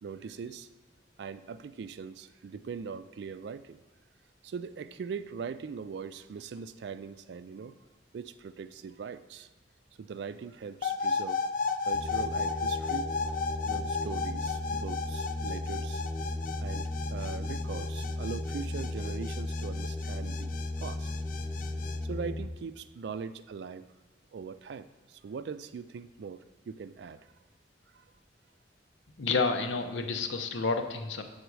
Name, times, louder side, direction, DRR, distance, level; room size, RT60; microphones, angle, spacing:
voice 1, 0.0-0.7 1.2-3.8 4.4-7.8 8.1-9.5 10.0-11.4 11.8-13.1 13.7-16.0 16.6-21.1 22.0-23.9 24.3-27.3 27.9-28.1, right 5 dB, 65° right, 13 dB, 0.3 m, -41 dB
sound 1, 10.8-22.0, left 5 dB, 45° left, 0.4 m, -34 dB
sound 2, 11.9-22.5, left 1 dB, 15° right, 0.9 m, -35 dB
voice 2, 29.2-31.2, left 4 dB, 85° left, 6 dB, 0.7 m, -30 dB
8.1 x 4.0 x 4.7 m, 1.2 s
head